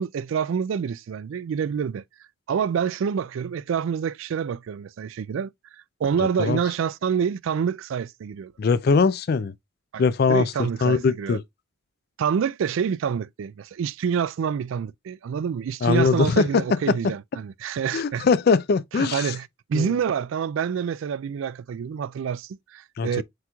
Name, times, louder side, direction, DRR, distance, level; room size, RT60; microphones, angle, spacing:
voice 1, 0.0-2.0 2.5-5.5 6.0-8.5 9.9-10.0 10.3-11.4 12.2-18.3 18.9-23.2, right 7 dB, 70° right, 0.3 m, -27 dB
voice 2, 6.2-6.6 8.6-9.5 10.0-10.5 10.8-11.4 15.8-17.1 17.9-19.3 19.7-19.9 23.0-23.2, left 4 dB, 45° left, 0.3 m, -21 dB
7.7 x 3.0 x 2.2 m
head